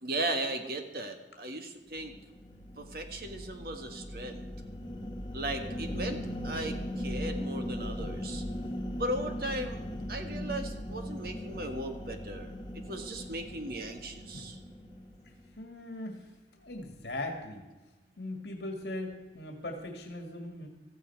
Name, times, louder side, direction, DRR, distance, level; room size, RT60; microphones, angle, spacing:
voice 1, 0.0-2.1 2.8-4.4 5.3-6.2 6.4-8.4 9.0-9.8 10.1-12.5 12.9-14.6, right 1 dB, 55° right, 5 dB, 1.6 m, -37 dB
sound 1, 2.0-15.5, equal, 25° left, 1.0 m, -39 dB
voice 2, 14.3-14.7 15.6-16.2 16.6-17.7 18.2-20.7, left 1 dB, 75° left, 3 dB, 1.9 m, -39 dB
15.5 x 14.0 x 4.6 m, 1.2 s
head